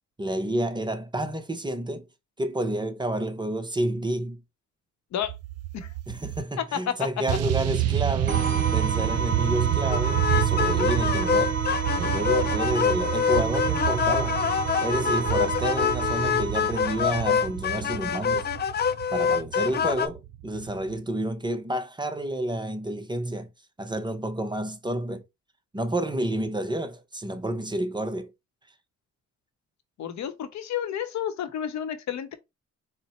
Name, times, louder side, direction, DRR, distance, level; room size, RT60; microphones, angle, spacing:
voice 1, 0.2-2.1 2.4-4.4 6.1-8.4 8.7-11.6 12.0-14.4 14.8-18.5 19.1-23.5 23.8-25.2 25.7-28.3, right 1 dB, 15° right, 0.7 m, -30 dB
sound 1, 5.2-6.4 7.3-21.0, right 13 dB, 55° right, 0.4 m, -29 dB
voice 2, 6.6-6.9 30.0-32.3, left 9 dB, 65° left, 0.8 m, -31 dB
sound 2, 8.3-17.7, right 3 dB, 35° right, 1.8 m, -31 dB
sound 3, 9.9-20.1, left 7 dB, 35° left, 0.4 m, -26 dB
4.1 x 2.1 x 4.2 m
cardioid pair, 90°, 30 cm